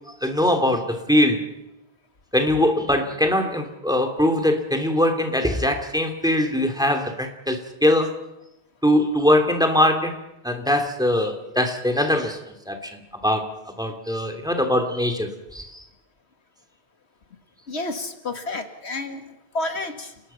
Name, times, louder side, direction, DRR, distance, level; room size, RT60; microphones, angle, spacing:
voice 1, 0.2-1.5 2.3-8.2 8.8-12.4 12.7-13.5 13.8-15.8, left 1 dB, 5° right, 5 dB, 2.8 m, -22 dB
voice 2, 17.7-19.2 19.5-20.1, left 2 dB, 85° left, 7 dB, 2.3 m, -30 dB
30.0 x 19.5 x 5.7 m, 0.91 s
omnidirectional pair, 1.1 m